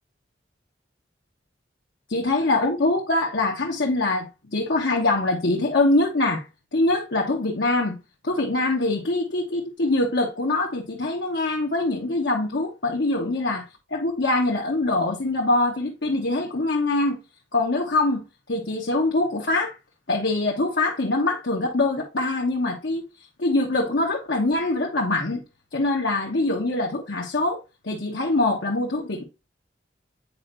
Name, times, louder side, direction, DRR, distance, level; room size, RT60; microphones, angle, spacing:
voice 1, 2.1-6.4 6.7-8.0 8.2-13.6 13.9-17.2 17.5-19.7 20.1-23.1 23.4-25.4 25.7-29.2, left 2 dB, 70° left, 1.1 m, -23 dB
8.5 x 4.5 x 2.5 m
head